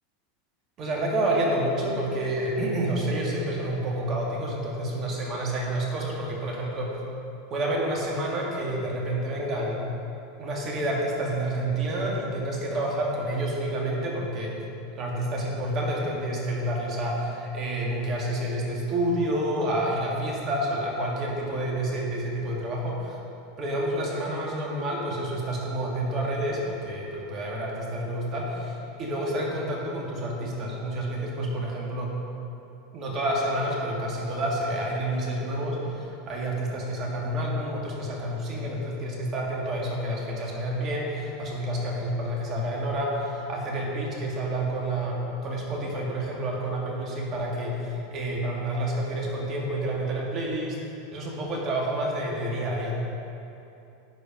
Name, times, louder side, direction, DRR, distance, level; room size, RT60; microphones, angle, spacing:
voice 1, 0.8-6.9 7.5-9.8 10.4-14.5 15.0-23.2 23.6-32.2 32.9-50.8 51.1-53.0, right 1 dB, 40° right, -2 dB, 2.2 m, -29 dB
10.5 x 4.9 x 5.3 m, 2.9 s
hypercardioid pair, 95°, 0 cm